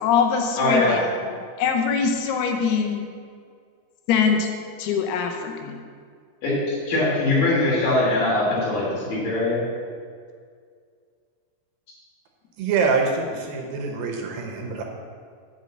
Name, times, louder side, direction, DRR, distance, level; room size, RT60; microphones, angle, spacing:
voice 1, 0.0-3.1 4.1-4.5 4.8-5.8, left 6 dB, 80° left, 4 dB, 2.8 m, -23 dB
voice 2, 0.6-1.0 6.4-9.6, left 2 dB, 60° left, -6 dB, 4.6 m, -22 dB
voice 3, 12.6-14.8, right 5 dB, 75° right, 3 dB, 2.5 m, -25 dB
9.6 x 5.3 x 7.9 m, 2.1 s
omnidirectional pair, 4.6 m